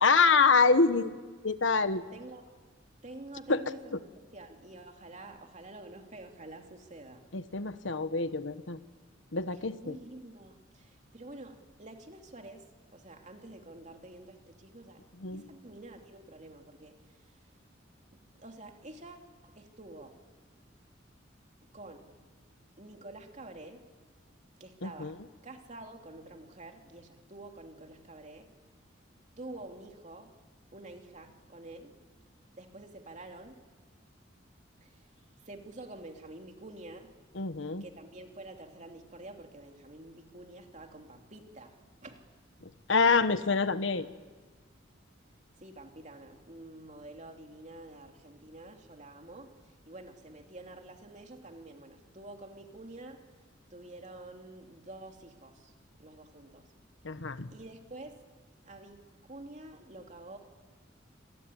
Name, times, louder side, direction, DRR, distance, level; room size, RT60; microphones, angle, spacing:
voice 1, 0.0-1.1 1.4-2.0 3.5-3.6 7.3-8.8 9.3-10.0 15.2-15.5 24.8-25.1 37.4-37.8 42.9-44.1 57.0-57.5, left 4 dB, 70° left, 11 dB, 1.2 m, -26 dB
voice 2, 2.1-2.4 3.0-7.3 9.5-15.0 15.3-17.4 18.3-20.2 21.7-22.1 22.8-23.8 24.6-28.5 29.4-30.3 30.7-31.9 32.5-33.6 34.8-37.1 37.8-42.2 45.6-53.3 53.7-55.7 56.0-56.7 57.5-58.2 58.6-60.4, right 2 dB, 40° right, 3 dB, 2.9 m, -48 dB
27.5 x 22.0 x 9.8 m, 1.4 s
head